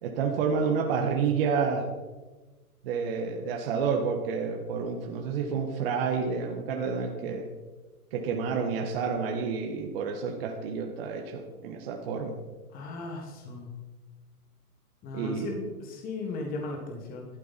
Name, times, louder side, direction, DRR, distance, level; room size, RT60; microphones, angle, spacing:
voice 1, 0.0-1.9 2.8-7.5 8.1-12.4 15.1-15.5, right 5 dB, 40° right, 2 dB, 1.5 m, -29 dB
voice 2, 12.7-13.7 15.0-17.3, left 2 dB, 20° left, 1 dB, 1.7 m, -36 dB
13.5 x 12.0 x 4.2 m, 1.2 s
hypercardioid pair, 145°, 45 cm